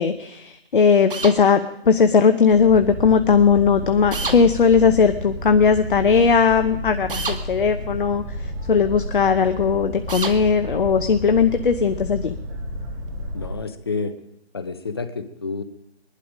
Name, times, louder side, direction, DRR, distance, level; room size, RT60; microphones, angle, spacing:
voice 1, 0.0-1.6 1.9-12.3, left 6 dB, 55° left, 9 dB, 0.9 m, -18 dB
sound 1, 1.1-1.4 4.1-4.4 7.1-7.4 10.1-10.4, right 4 dB, 55° right, 1.9 m, -27 dB
Boat Water vehicle, 2.5-13.5, equal, 10° right, 1.9 m, -32 dB
voice 2, 13.3-14.2 14.5-15.6, left 4 dB, 25° left, 11 dB, 0.7 m, -29 dB
21.0 x 11.5 x 5.1 m, 0.83 s
figure-of-eight pair, 160°, 32 cm